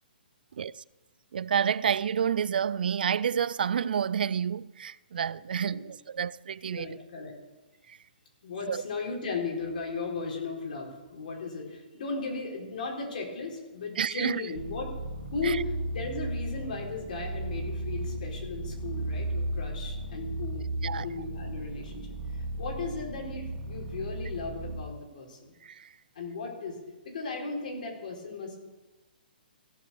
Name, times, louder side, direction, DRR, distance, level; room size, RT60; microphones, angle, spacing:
voice 1, 1.3-7.0 7.9-8.0 8.7-8.8 14.0-14.4 15.4-15.6 20.8-21.1 25.6-25.9, right 8 dB, 65° right, 0.3 m, -29 dB
voice 2, 6.7-7.3 8.4-14.9 15.3-22.1 22.6-25.6 26.2-26.8 27.0-28.6, left 4 dB, 55° left, 4.0 m, -36 dB
sound 1, 14.5-24.8, right 1 dB, 85° right, 2.0 m, -35 dB
16.0 x 5.9 x 7.0 m
hypercardioid pair, 170°, 5 cm